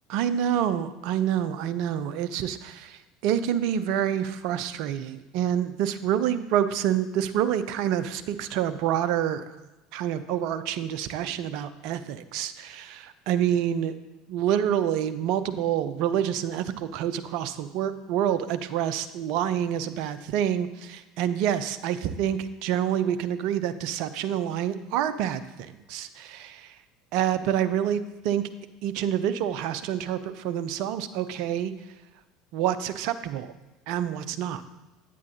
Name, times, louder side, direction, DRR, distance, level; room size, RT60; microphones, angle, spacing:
voice 1, 0.1-9.4 9.9-14.0 14.3-26.7 27.1-28.4 28.8-31.7 32.5-33.5 33.9-34.6, right 10 dB, 55° right, 11 dB, 0.6 m, -27 dB
9.5 x 9.1 x 2.8 m, 1.1 s
figure-of-eight pair, 70°, 0 cm